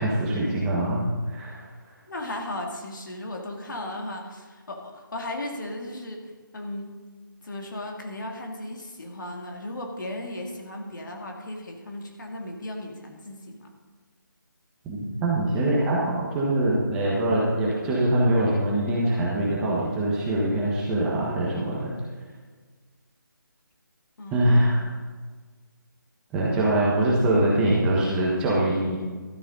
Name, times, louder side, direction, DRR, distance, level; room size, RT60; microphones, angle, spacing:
voice 1, 0.0-1.7 14.8-21.9 24.3-24.8 26.3-29.0, right 1 dB, 10° right, -5 dB, 1.3 m, -23 dB
voice 2, 2.1-6.9 7.4-13.7 24.2-24.7, left 1 dB, 65° left, 1 dB, 2.2 m, -36 dB
12.5 x 10.5 x 4.0 m, 1.4 s
figure-of-eight pair, 165°, 11 cm